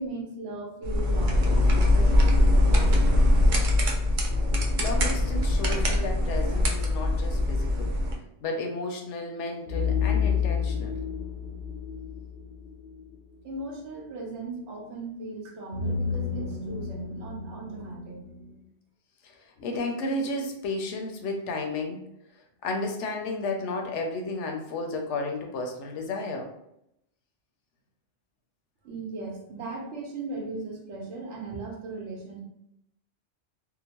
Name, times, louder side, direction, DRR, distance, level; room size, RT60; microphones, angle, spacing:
voice 1, 0.0-3.1 13.4-18.2 28.8-32.4, right 3 dB, 75° right, -1 dB, 1.0 m, -37 dB
sound 1, 0.8-8.1, left 1 dB, 60° right, 0.5 m, -22 dB
sound 2, 1.5-3.3 4.3-6.4 9.7-13.4 15.7-18.6, left 6 dB, 60° left, 0.6 m, -32 dB
voice 2, 4.8-7.9 8.4-11.0 19.2-22.0 22.6-26.5, left 2 dB, 80° left, 3 dB, 0.9 m, -32 dB
2.8 x 2.0 x 2.9 m, 0.80 s
omnidirectional pair, 1.2 m